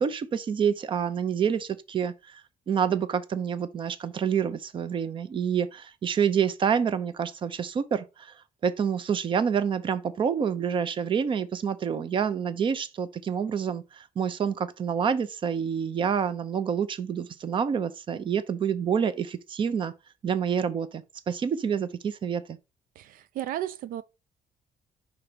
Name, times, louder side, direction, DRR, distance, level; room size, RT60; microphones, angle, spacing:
voice 1, 0.0-2.4 2.7-8.3 8.6-19.9 20.2-22.6, right 7 dB, 35° right, 0.6 m, -27 dB
voice 2, 23.0-24.0, right 12 dB, 80° right, 0.4 m, -34 dB
5.7 x 4.0 x 5.0 m
cardioid pair, 165°, 14 cm